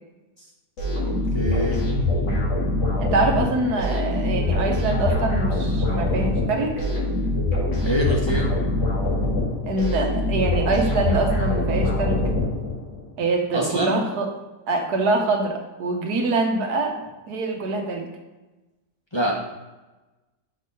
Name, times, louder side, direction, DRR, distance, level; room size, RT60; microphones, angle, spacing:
sound 1, 0.8-13.0, left 2 dB, 85° left, 2.7 m, -24 dB
voice 1, 1.1-1.8 7.8-8.5 13.5-14.0 19.1-19.3, right 1 dB, 20° left, -4 dB, 1.1 m, -25 dB
voice 2, 3.0-6.8 9.6-12.2 13.2-14.3 14.7-17.0 17.3-18.1, right 3 dB, 70° right, 2 dB, 1.5 m, -24 dB
6.5 x 3.5 x 5.4 m, 1.1 s
omnidirectional pair, 1.8 m